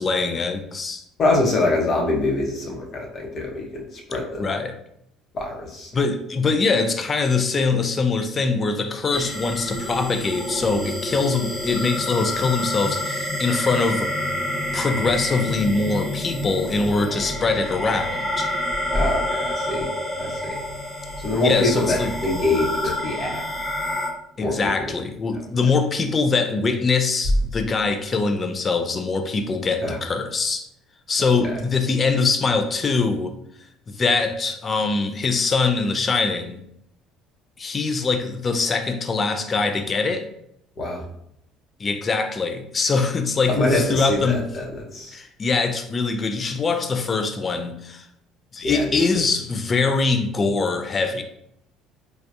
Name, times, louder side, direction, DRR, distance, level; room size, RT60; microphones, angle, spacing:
voice 1, 0.0-1.0 4.4-4.8 5.9-14.1 14.7-18.5 21.4-22.1 22.8-22.9 24.4-30.7 31.1-33.4 33.9-36.6 37.6-40.3 41.8-44.4 45.1-48.1 48.5-51.2, left 4 dB, 35° left, 7 dB, 0.4 m, -23 dB
voice 2, 1.2-4.4 5.3-5.9 18.9-19.9 20.2-20.5 21.2-23.4 24.4-24.5 24.9-25.0 29.8-30.0 31.4-31.5 40.8-41.0 43.5-45.2 48.6-49.0, left 2 dB, 50° left, 0 dB, 0.9 m, -24 dB
sound 1, 9.1-24.1, left 1 dB, 5° left, 1.0 m, -28 dB
3.3 x 2.3 x 2.7 m, 0.75 s
supercardioid pair, 75°, 0 cm